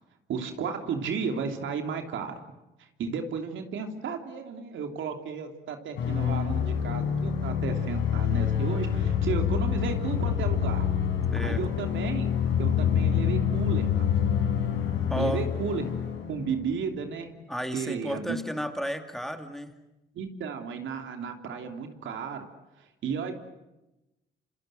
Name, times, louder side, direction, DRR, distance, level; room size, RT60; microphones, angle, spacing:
voice 1, 0.3-2.4 2.8-10.8 11.4-12.3 12.6-14.1 15.2-15.9 16.3-17.3 17.7-18.4 20.1-22.5 22.8-23.4, right 6 dB, 75° right, 5 dB, 3.0 m, -33 dB
sound 1, 6.0-16.7, left 8 dB, 85° left, 5.4 m, -27 dB
voice 2, 15.1-15.5 17.5-19.7, equal, ahead, 6 dB, 2.4 m, -32 dB
27.0 x 26.5 x 7.8 m, 0.98 s
cardioid pair, 90°, 20 cm